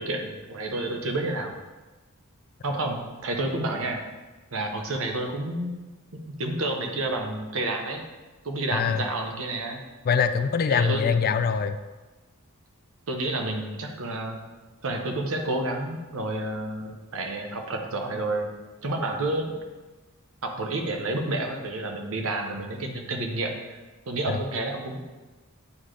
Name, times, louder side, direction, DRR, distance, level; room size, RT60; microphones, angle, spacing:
voice 1, 0.0-1.5 2.6-4.0 4.5-5.7 6.1-8.0 8.4-9.8 10.7-11.2 13.1-14.4 14.8-18.5 18.8-19.5 20.4-23.8 24.1-25.0, right 2 dB, 65° right, 3 dB, 0.9 m, -30 dB
voice 2, 8.7-9.0 10.1-11.8 24.3-24.4, left 6 dB, 45° left, 10 dB, 0.3 m, -23 dB
8.5 x 3.8 x 3.2 m, 1.2 s
head